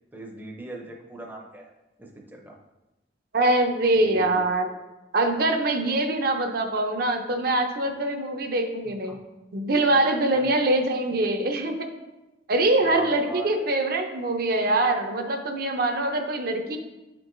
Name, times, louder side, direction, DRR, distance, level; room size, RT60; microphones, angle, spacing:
voice 1, 0.1-1.7 2.0-2.6 4.0-4.4 9.1-9.2 10.4-10.5 12.8-14.0, right 2 dB, 10° right, 0 dB, 0.5 m, -40 dB
voice 2, 3.3-4.7 5.1-9.2 9.5-11.9 12.5-16.8, right 2 dB, 55° right, 5 dB, 0.6 m, -23 dB
8.2 x 4.5 x 2.6 m, 1.0 s
head